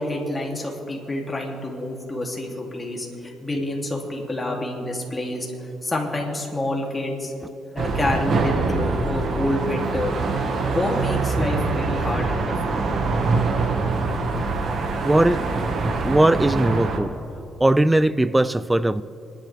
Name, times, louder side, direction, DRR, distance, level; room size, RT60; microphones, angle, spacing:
voice 1, 0.0-7.3 7.7-10.2 10.7-12.9, left 1 dB, 20° left, 2.8 m, -28 dB
sound 1, 7.8-17.0, right 3 dB, 55° right, 1.5 m, -24 dB
voice 2, 15.0-15.5 16.0-17.1 17.6-19.0, right 1 dB, 10° right, 0.4 m, -19 dB
27.0 x 11.5 x 3.4 m
cardioid pair, 90°, 0 cm